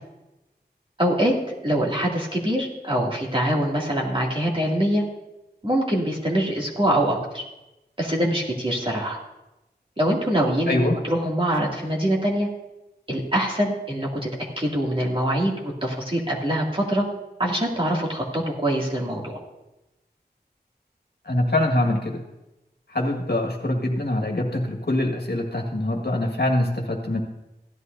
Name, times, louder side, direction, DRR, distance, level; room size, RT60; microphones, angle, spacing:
voice 1, 1.0-1.3 1.6-5.0 5.6-7.4 8.0-9.2 10.0-12.5 13.1-14.3 14.6-17.1 17.4-19.4, equal, 30° right, -3 dB, 2.4 m, -24 dB
voice 2, 21.2-22.2 22.9-27.2, left 1 dB, 70° left, 0 dB, 1.7 m, -24 dB
16.0 x 11.0 x 2.7 m, 0.96 s
wide cardioid pair, 45°, 17 cm